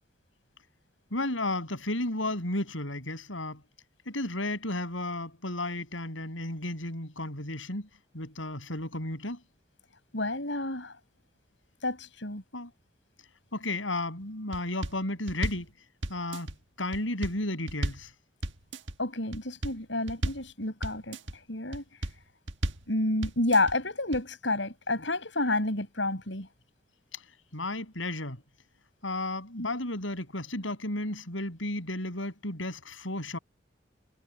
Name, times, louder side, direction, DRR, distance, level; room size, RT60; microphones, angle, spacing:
voice 1, 1.1-3.6 4.1-7.9 8.1-9.4 12.5-12.7 13.5-15.7 16.1-16.5 16.8-18.1 27.5-28.4 29.0-33.4, left 1 dB, 90° left, 7.9 m, -33 dB
voice 2, 10.1-10.9 11.8-12.4 19.0-21.2 21.5-21.8 22.9-26.5 29.6-29.7, left 2 dB, 70° left, 7.3 m, -29 dB
sound 1, 14.5-15.0 15.3-15.7 16.0-16.5 16.9-17.4 17.7-18.1 18.4-18.9 19.3-19.8 20.1-20.5 20.8-21.3 21.7-22.2 22.5-22.9 23.2-23.7 24.1-24.2, right 1 dB, 70° right, 1.6 m, -34 dB
head